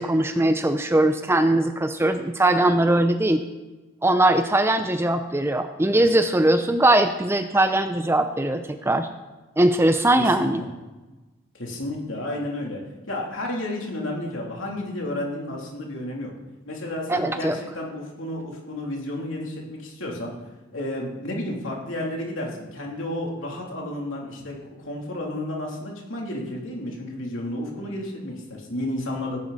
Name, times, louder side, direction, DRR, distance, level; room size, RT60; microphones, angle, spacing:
voice 1, 0.0-3.4 4.0-9.1 9.6-10.6 17.1-17.6, right 1 dB, 10° right, 8 dB, 0.5 m, -20 dB
voice 2, 10.2-10.7 11.5-12.8 13.1-16.3 16.6-20.3 20.7-29.4, left 1 dB, 65° left, -1 dB, 3.2 m, -32 dB
17.0 x 10.5 x 4.2 m, 1.2 s
head